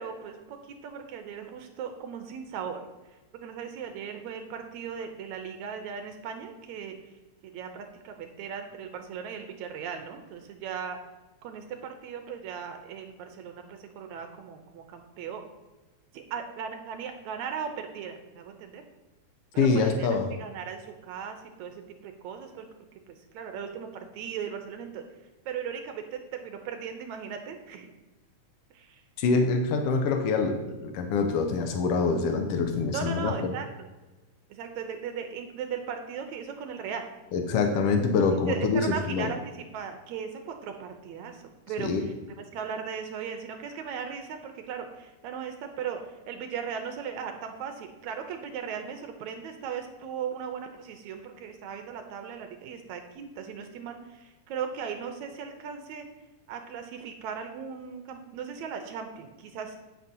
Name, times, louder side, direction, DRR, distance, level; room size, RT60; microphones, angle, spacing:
voice 1, 0.0-2.8 3.1-7.0 7.4-11.0 11.4-15.4 16.1-18.8 19.5-20.1 20.4-22.7 23.1-25.0 25.5-27.9 28.7-29.0 32.9-33.9 34.5-37.1 38.5-56.1 56.5-59.8, right 7 dB, 75° right, 5 dB, 2.0 m, -37 dB
voice 2, 19.6-20.3 29.2-33.5 37.3-39.3 41.8-42.1, left 4 dB, 85° left, 5 dB, 1.3 m, -25 dB
9.4 x 8.8 x 2.8 m, 1.2 s
omnidirectional pair, 3.6 m